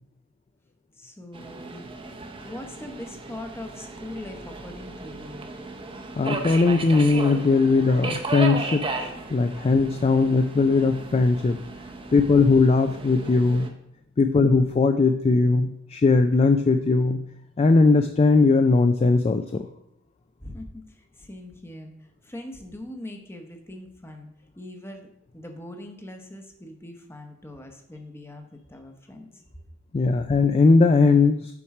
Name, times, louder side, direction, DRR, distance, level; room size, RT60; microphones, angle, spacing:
voice 1, 1.0-1.9 2.4-5.5 20.4-21.9 22.2-24.3 24.6-25.1 25.3-29.3, left 1 dB, 10° left, 4 dB, 0.8 m, -41 dB
Subway metro underground, 1.3-13.7, right 3 dB, 25° right, 0.7 m, -35 dB
voice 2, 6.2-11.6 12.1-13.7 14.2-17.2 17.6-19.7 29.9-31.6, left 3 dB, 30° left, 8 dB, 0.3 m, -19 dB
7.2 x 4.6 x 4.8 m, 0.77 s
head